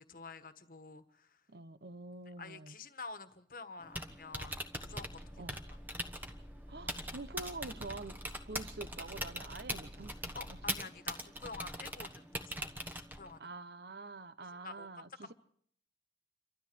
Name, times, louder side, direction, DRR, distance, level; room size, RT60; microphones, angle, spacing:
voice 1, 0.0-1.4 2.4-5.5 10.3-12.5 13.0-13.5 14.6-14.9 15.2-15.3, left 4 dB, 50° left, 1.4 m, -49 dB
voice 2, 1.5-2.7 5.4-5.6 6.7-8.2 8.5-10.6 13.4-15.3, right 3 dB, 60° right, 1.0 m, -46 dB
Typing, 3.8-13.4, equal, 10° right, 1.2 m, -42 dB
sound 1, 4.8-10.8, equal, 10° left, 2.3 m, -52 dB
28.5 x 13.5 x 7.9 m
head